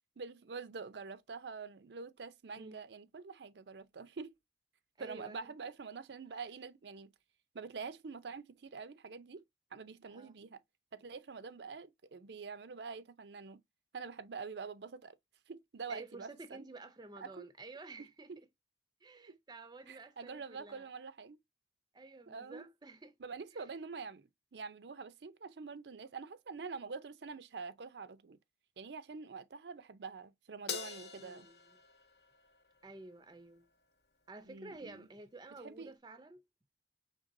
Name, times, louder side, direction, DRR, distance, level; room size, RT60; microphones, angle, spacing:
voice 1, 0.2-4.3 5.0-7.1 7.5-9.4 9.7-10.6 10.9-13.6 13.9-15.1 15.5-16.6 17.2-17.5 18.0-18.1 19.3-19.4 19.9-21.4 22.3-22.6 23.2-28.4 28.8-31.5 34.5-35.1 35.6-35.9, right 5 dB, 75° right, 0.5 m, -46 dB
voice 2, 2.5-2.9 5.0-5.5 10.1-10.3 15.9-18.3 19.0-20.9 21.9-23.1 23.5-23.7 31.1-31.6 32.8-33.7 34.3-36.4, right 2 dB, 25° right, 0.5 m, -51 dB
Crash cymbal, 30.7-33.2, left 7 dB, 65° left, 0.9 m, -45 dB
5.2 x 3.3 x 2.6 m
head